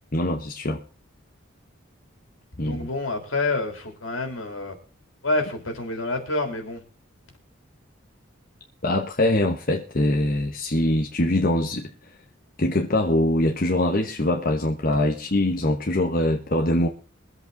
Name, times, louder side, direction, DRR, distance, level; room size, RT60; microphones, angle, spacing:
voice 1, 0.1-0.8 2.6-2.9 8.8-11.9 12.6-16.9, left 1 dB, 45° left, 1.1 m, -23 dB
voice 2, 2.6-4.8 5.2-6.8, left 2 dB, 75° left, 3.5 m, -28 dB
22.5 x 8.1 x 3.9 m
head